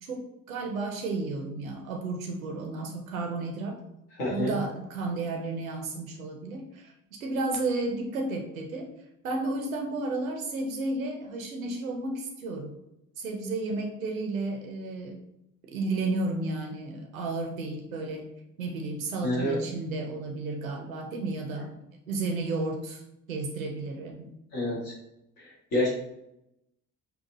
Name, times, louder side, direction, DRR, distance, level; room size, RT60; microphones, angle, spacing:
voice 1, 0.0-3.8 4.3-6.9 7.2-8.9 9.2-12.7 13.2-15.2 15.7-18.2 18.6-21.8 22.1-23.0 23.3-24.3, right 2 dB, 85° right, 2 dB, 0.5 m, -32 dB
voice 2, 4.2-4.6 19.2-19.6 24.5-24.9 25.4-25.9, left 1 dB, 60° left, -5 dB, 1.3 m, -28 dB
5.4 x 2.3 x 2.6 m, 0.85 s
figure-of-eight pair, 45°, 40 cm